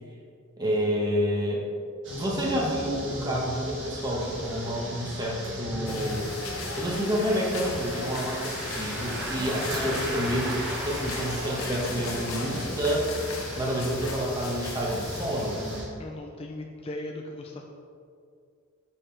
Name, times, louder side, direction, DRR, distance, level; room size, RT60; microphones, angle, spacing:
voice 1, 0.6-1.6 2.1-6.3 6.8-10.6 10.8-13.1 13.6-15.6, equal, 20° right, -3 dB, 1.1 m, -29 dB
sound 1, 2.0-15.9, right 1 dB, 60° right, 1.5 m, -36 dB
sound 2, 5.9-15.8, left 3 dB, 70° left, 0.9 m, -38 dB
voice 2, 16.0-17.6, left 1 dB, 25° left, 1 dB, 0.4 m, -38 dB
6.6 x 5.6 x 3.3 m, 2.4 s
head